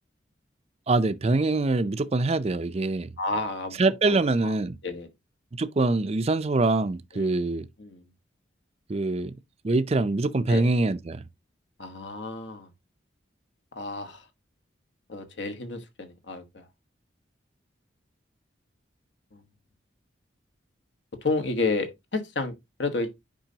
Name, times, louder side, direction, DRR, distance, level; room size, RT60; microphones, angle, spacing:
voice 1, 0.9-3.1 3.8-4.8 5.6-7.7 8.9-9.3 9.6-11.2, right 3 dB, 35° right, 0.5 m, -24 dB
voice 2, 3.2-3.8 4.0-4.5 4.8-5.1 7.1-7.3 7.8-8.1 10.5-10.7 11.8-12.7 13.7-14.2 15.1-16.6 19.3-19.4 21.2-22.5 22.8-23.1, left 3 dB, 70° left, 1.3 m, -31 dB
8.9 x 5.4 x 2.8 m
head